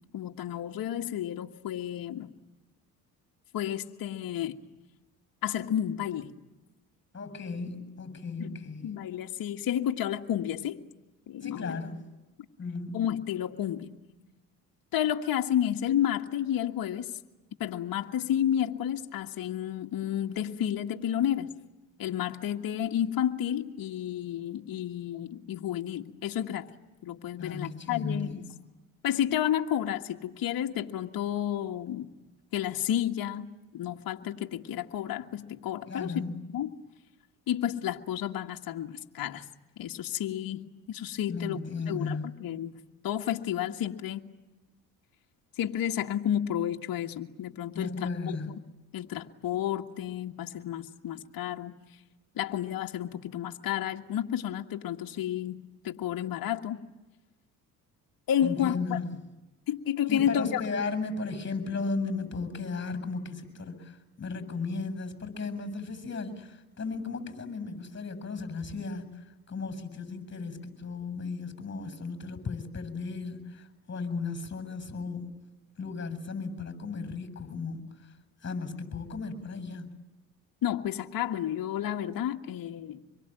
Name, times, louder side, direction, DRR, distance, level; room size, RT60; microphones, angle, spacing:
voice 1, 0.1-2.3 3.5-4.6 5.4-6.3 8.4-10.8 11.3-11.8 12.9-13.9 14.9-17.1 17.6-21.5 22.0-26.7 27.0-28.4 29.0-32.1 32.5-36.2 36.5-36.8 37.5-39.5 39.8-42.7 43.0-44.2 45.6-48.6 48.9-51.7 52.4-56.8 58.3-59.0 59.7-60.6 80.6-83.0, left 10 dB, 60° left, 3 dB, 1.8 m, -31 dB
voice 2, 7.1-9.0 11.4-12.0 12.6-13.0 27.4-28.5 35.9-36.3 41.3-42.4 47.7-48.6 58.4-59.1 60.1-75.2 75.8-77.8 78.4-79.9, left 4 dB, 30° left, 11 dB, 7.5 m, -35 dB
26.0 x 23.0 x 9.1 m, 1.1 s
supercardioid pair, 70°, 40 cm